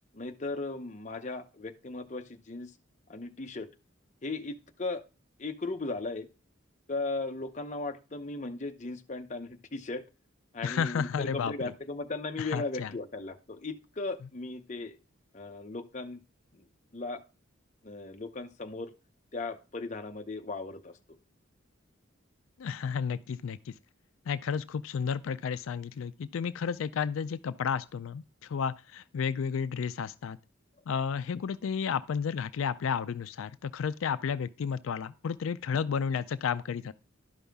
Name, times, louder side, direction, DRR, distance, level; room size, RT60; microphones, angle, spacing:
voice 1, 0.1-2.7 3.1-3.7 4.2-5.0 5.4-6.3 6.9-10.0 10.5-15.0 15.3-16.2 16.5-16.7 16.9-17.2 17.8-18.9 19.3-21.2, left 3 dB, 35° left, 0.7 m, -37 dB
voice 2, 10.6-11.5 12.4-12.9 22.6-23.7 24.3-30.4 30.9-36.9, left 6 dB, 80° left, 0.4 m, -32 dB
11.5 x 5.5 x 3.4 m
head